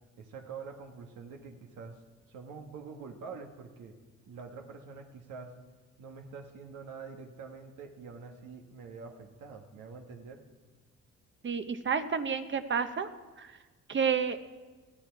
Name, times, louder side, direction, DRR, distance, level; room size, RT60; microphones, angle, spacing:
voice 1, 0.2-2.0 2.3-3.9 4.3-5.5 6.0-10.4, right 5 dB, 85° right, 3 dB, 1.7 m, -46 dB
voice 2, 11.4-13.1 13.4-13.5 13.9-14.4, right 6 dB, 40° right, 10 dB, 1.0 m, -30 dB
19.5 x 14.0 x 4.7 m, 1.3 s
cardioid pair, 90°, 30 cm